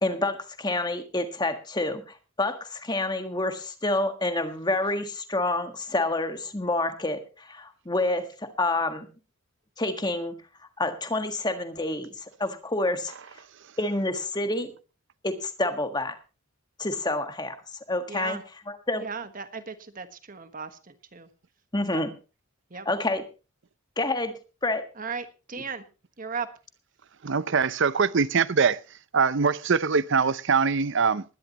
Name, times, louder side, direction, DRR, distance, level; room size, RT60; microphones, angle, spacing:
voice 1, 0.0-2.0 2.4-8.3 8.6-9.1 9.8-10.4 10.8-12.1 12.4-13.1 13.8-14.7 15.2-16.1 16.8-17.5 17.9-18.4 18.9-19.0 21.7-22.1 22.8-23.2 24.0-24.3 24.6-24.9, left 2 dB, 20° left, 1.6 m, -28 dB
voice 2, 18.1-18.4 19.0-21.3 21.9-22.0 22.7-22.9 25.0-25.8 26.2-26.5, right 5 dB, 40° right, 1.4 m, -36 dB
voice 3, 27.2-28.8 29.1-31.2, right 5 dB, 55° right, 0.6 m, -23 dB
20.5 x 11.5 x 3.0 m
head